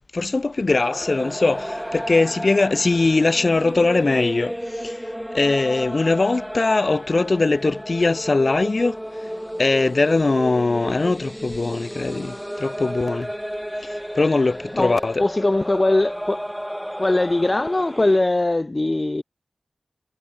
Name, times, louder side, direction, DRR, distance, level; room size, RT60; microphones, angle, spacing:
voice 1, 0.1-4.5 4.8-4.9 5.3-9.0 9.6-13.3 13.8-15.2, left 3 dB, 50° left, 1.8 m, -21 dB
sound 1, 0.7-18.2, equal, ahead, 4.2 m, -33 dB
voice 2, 14.7-16.5 17.0-19.2, left 2 dB, 30° left, 0.6 m, -21 dB
wide cardioid pair, 70°, 0 cm